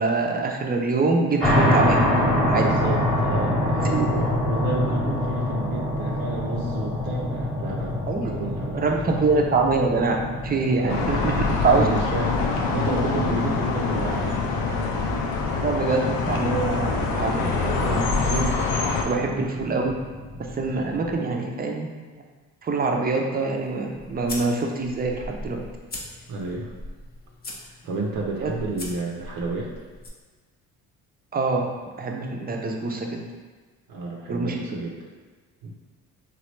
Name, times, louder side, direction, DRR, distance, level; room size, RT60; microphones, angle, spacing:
voice 1, 0.0-2.0 2.5-2.7 3.8-4.2 8.1-10.2 10.4-11.9 15.6-18.6 19.0-19.9 20.5-21.9 22.1-22.2 22.6-25.6 28.4-28.5 31.3-31.7 32.0-33.2 34.3-34.6, right 3 dB, 25° right, 1 dB, 0.5 m, -25 dB
sound 1, 1.4-21.1, left 1 dB, ahead, 1.1 m, -27 dB
voice 2, 2.5-9.3 10.8-11.0 11.5-14.4 14.7-15.1 15.8-16.0 19.2-19.5 26.3-26.7 27.8-29.7 33.9-35.1 35.6-35.7, right 3 dB, 70° right, -1 dB, 0.6 m, -31 dB
sound 2, 10.9-19.0, left 4 dB, 65° left, 0.6 m, -25 dB
sound 3, 23.5-30.1, left 1 dB, 25° left, 0.6 m, -40 dB
3.1 x 2.4 x 3.0 m, 1.4 s
supercardioid pair, 65°, 37 cm